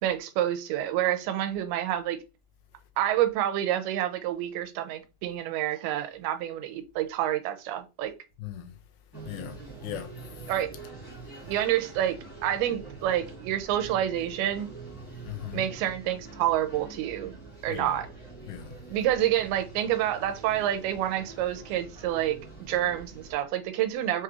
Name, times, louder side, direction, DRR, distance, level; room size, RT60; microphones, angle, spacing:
voice 1, 0.0-2.2 3.0-8.1 10.5-10.7 11.4-14.7 15.5-17.3 17.6-18.1 18.9-22.4 22.7-24.2, right 12 dB, 90° right, 2.5 m, -28 dB
voice 2, 8.4-8.8 9.3-10.1 10.4-10.5 15.3-15.7 17.7-18.0 18.5-18.7, left 11 dB, 80° left, 2.4 m, -38 dB
sound 1, 9.1-23.3, right 3 dB, 10° left, 1.0 m, -45 dB
6.3 x 2.4 x 3.0 m
omnidirectional pair, 4.4 m